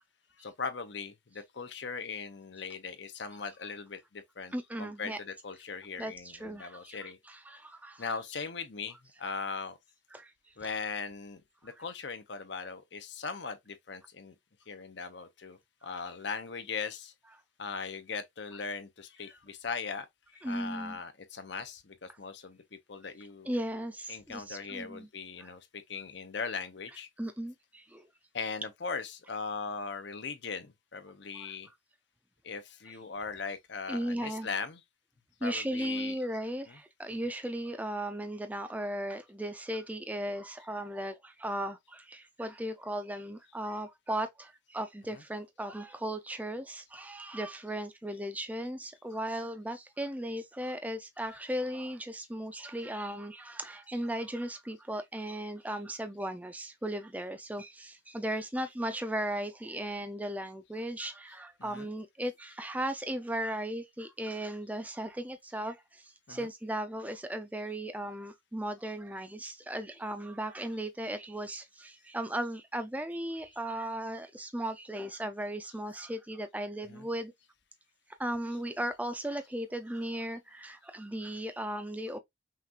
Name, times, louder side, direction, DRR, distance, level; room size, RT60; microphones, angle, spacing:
voice 1, 0.4-7.2 8.0-9.8 10.6-14.3 14.7-17.1 17.6-20.1 20.4-23.5 24.1-27.1 28.3-31.7 32.4-34.8 35.4-36.2 36.7-36.8 37.1-37.2 45.1-45.2 53.9-54.0 61.6-61.9 66.3-66.5 76.9-77.1, left 5 dB, 60° left, 0.8 m, -39 dB
voice 2, 4.5-5.2 6.0-8.1 10.1-10.3 20.4-21.0 23.4-25.1 25.4-25.5 27.2-28.1 31.3-31.5 33.9-34.5 35.4-77.3 78.2-82.2, right 1 dB, 10° right, 0.5 m, -36 dB
5.7 x 2.5 x 2.9 m
head